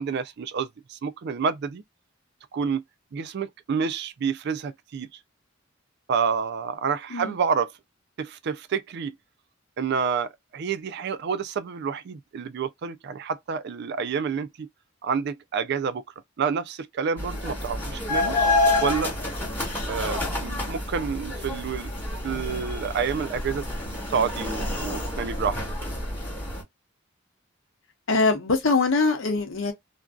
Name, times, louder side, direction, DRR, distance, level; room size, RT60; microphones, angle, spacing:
voice 1, 0.0-1.8 2.5-2.8 3.1-5.1 6.1-7.7 8.2-9.1 9.8-14.7 15.0-16.0 16.4-18.3 18.8-19.1 19.9-21.9 22.2-23.7 24.1-25.6 26.0-26.1, right 6 dB, 55° right, 0.4 m, -28 dB
sound 1, 17.2-26.6, left 2 dB, 10° left, 1.3 m, -28 dB
voice 2, 28.1-29.7, left 3 dB, 75° left, 0.8 m, -22 dB
2.5 x 2.2 x 2.3 m
head